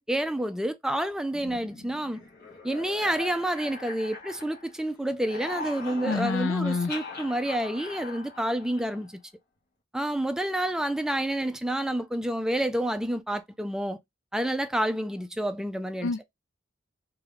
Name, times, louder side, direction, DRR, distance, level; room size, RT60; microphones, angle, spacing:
voice 1, 0.0-2.2 2.6-9.1 9.9-14.0 14.3-16.1, right 1 dB, 5° right, 0.4 m, -29 dB
sound 1, 1.3-4.8 5.1-9.1, left 3 dB, 55° left, 1.5 m, -41 dB
voice 2, 6.0-6.9 16.0-16.2, left 4 dB, 80° left, 0.4 m, -27 dB
3.1 x 2.9 x 3.5 m
head